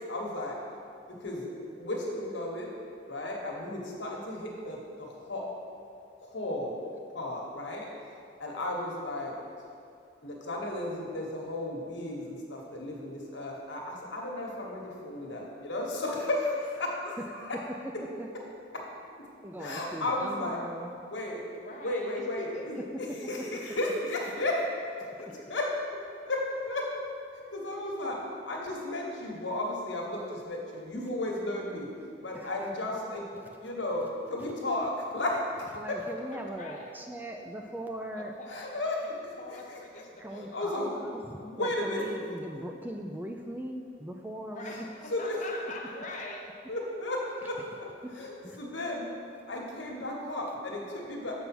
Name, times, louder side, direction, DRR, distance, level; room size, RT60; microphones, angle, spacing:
voice 1, 0.1-0.6 1.2-2.7 3.1-5.5 6.2-6.7 7.1-7.9 8.4-9.3 10.2-17.5 18.7-18.8 19.6-20.6 21.1-21.4 21.8-22.7 23.3-24.6 25.0-25.7 26.2-26.9 27.5-28.2 28.5-31.9 32.2-33.2 33.6-35.4 35.9-36.0 38.5-39.0 39.2-40.0 40.3-40.9 41.4-42.0 44.7-44.8 45.1-45.4 46.7-47.7 48.1-49.1 49.5-51.3, left 1 dB, 75° left, -1 dB, 1.4 m, -34 dB
voice 2, 16.9-18.4 19.4-20.9 22.9-23.6 32.3-32.7 33.6-33.7 34.4-34.5 34.8-34.9 35.3-38.4 40.2-44.9 47.4-47.7 48.0-48.1 48.4-48.6, right 1 dB, 10° right, 3 dB, 0.3 m, -40 dB
voice 3, 21.5-22.9 25.3-25.4 36.2-37.0 38.1-39.1 39.4-40.6 44.4-46.7, left 2 dB, 40° left, -1 dB, 0.9 m, -43 dB
6.9 x 5.3 x 6.0 m, 2.4 s
head